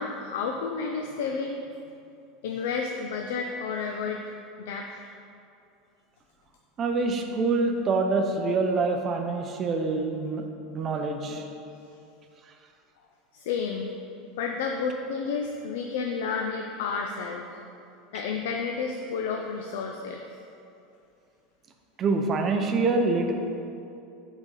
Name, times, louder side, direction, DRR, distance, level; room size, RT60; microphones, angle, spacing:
voice 1, 0.0-1.6 2.4-4.4 4.7-4.9 13.3-13.9 14.4-17.5 18.1-20.2, left 5 dB, 85° left, 2 dB, 0.4 m, -31 dB
voice 2, 6.8-10.4 10.7-11.4 22.0-23.3, right 3 dB, 25° right, 4 dB, 0.5 m, -25 dB
7.9 x 4.1 x 3.8 m, 2.6 s
supercardioid pair, 165°, 0 cm